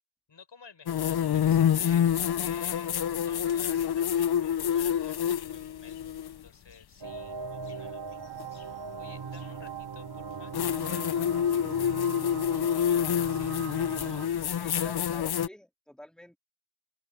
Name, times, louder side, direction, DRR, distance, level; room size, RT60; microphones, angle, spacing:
voice 1, 0.3-14.2, left 5 dB, 80° left, 6.9 m, -54 dB
sound 1, 0.9-6.4 8.4-8.5 10.5-15.5, left 9 dB, 60° left, 0.5 m, -27 dB
sound 2, 7.0-14.3, right 5 dB, 75° right, 3.4 m, -39 dB
voice 2, 14.4-16.4, left 1 dB, ahead, 3.1 m, -49 dB
open air
cardioid pair, 50°, 44 cm